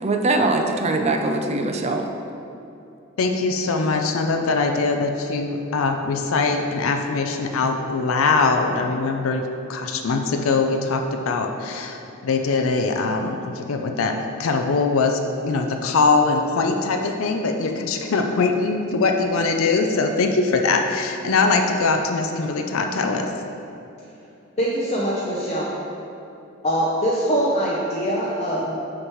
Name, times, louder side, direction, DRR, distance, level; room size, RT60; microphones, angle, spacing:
voice 1, 0.0-2.1, right 2 dB, 30° right, 4 dB, 0.4 m, -22 dB
voice 2, 3.2-9.4 9.7-23.3, left 3 dB, 80° left, 4 dB, 0.5 m, -22 dB
voice 3, 24.6-25.7 26.6-28.7, equal, 30° left, -6 dB, 0.6 m, -23 dB
6.3 x 6.0 x 3.0 m, 2.7 s
head